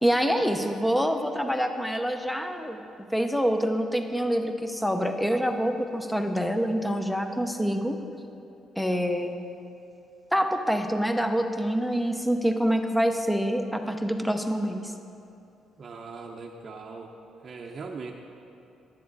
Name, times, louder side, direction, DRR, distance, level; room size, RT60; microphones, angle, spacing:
voice 1, 0.0-2.8 3.1-8.0 8.8-9.3 10.3-14.9, equal, 5° left, 6 dB, 0.7 m, -26 dB
voice 2, 15.8-17.1 17.4-18.1, right 4 dB, 45° right, 0 dB, 0.6 m, -40 dB
10.5 x 7.4 x 4.0 m, 2.7 s
cardioid pair, 90°, 0 cm